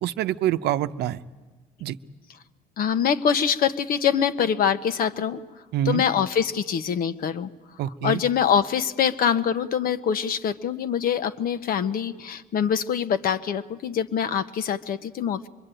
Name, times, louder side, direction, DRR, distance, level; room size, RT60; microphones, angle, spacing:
voice 1, 0.0-1.2 1.8-2.0 5.7-6.0 7.8-8.2, right 12 dB, 75° right, 10 dB, 0.8 m, -25 dB
voice 2, 2.8-5.4 5.8-7.5 8.0-15.5, left 8 dB, 60° left, 12 dB, 1.0 m, -24 dB
25.0 x 22.0 x 9.1 m, 1.3 s
cardioid pair, 110°, 17 cm